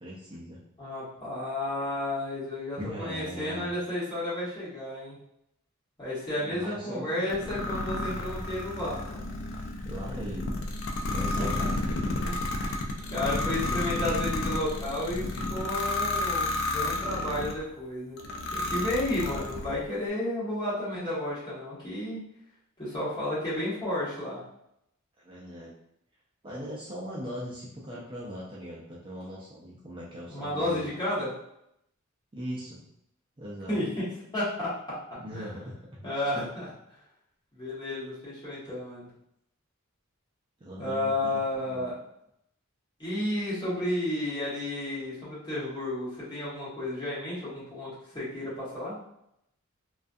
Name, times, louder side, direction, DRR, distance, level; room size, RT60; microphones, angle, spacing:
voice 1, 0.0-0.6 2.8-3.7 6.4-7.5 9.8-10.7 11.0-11.6 12.8-13.1 25.2-25.7 26.4-30.9 32.3-32.9 33.4-33.8 35.2-36.1 40.6-41.4 41.7-41.8, equal, 25° right, -6 dB, 0.4 m, -40 dB
voice 2, 0.8-5.2 6.0-9.3 11.4-11.6 12.2-16.5 16.7-18.2 18.5-22.2 22.8-24.4 30.3-31.3 33.7-34.0 34.3-34.7 35.1-35.6 36.0-36.7 37.5-39.1 40.8-42.0 43.0-49.0, left 1 dB, 20° left, -10 dB, 1.2 m, -32 dB
sound 1, 7.3-17.6 18.2-19.8, left 2 dB, 70° left, 0.4 m, -31 dB
2.4 x 2.3 x 2.5 m, 0.78 s
head